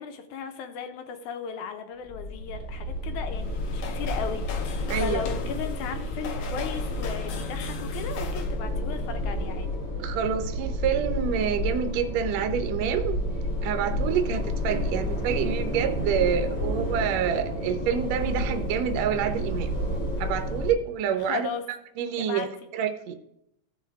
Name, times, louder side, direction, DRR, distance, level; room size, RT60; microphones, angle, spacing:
voice 1, 0.0-9.7 21.2-21.6 22.2-22.5, left 7 dB, 85° left, 7 dB, 2.4 m, -36 dB
sound 1, 2.1-20.7, left 1 dB, 25° left, 1.8 m, -30 dB
sound 2, 3.3-8.6, left 6 dB, 65° left, 1.7 m, -38 dB
voice 2, 4.9-5.2 10.0-13.2 13.6-19.7 20.2-21.5 22.0-22.4 22.7-23.2, right 8 dB, 70° right, 7 dB, 1.9 m, -27 dB
15.5 x 5.7 x 3.5 m, 0.79 s
omnidirectional pair, 3.4 m